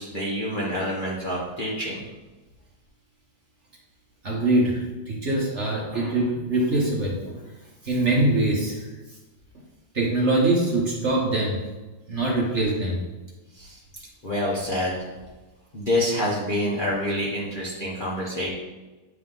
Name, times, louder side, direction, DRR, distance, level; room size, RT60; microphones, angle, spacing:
voice 1, 0.0-2.0 13.5-13.8 14.2-15.1 15.7-18.5, left 1 dB, 35° left, -5 dB, 0.9 m, -27 dB
voice 2, 4.2-7.4 7.8-8.9 9.9-11.6 12.1-13.0, right 2 dB, 45° right, -3 dB, 1.2 m, -23 dB
8.9 x 3.5 x 3.8 m, 1.2 s
omnidirectional pair, 2.0 m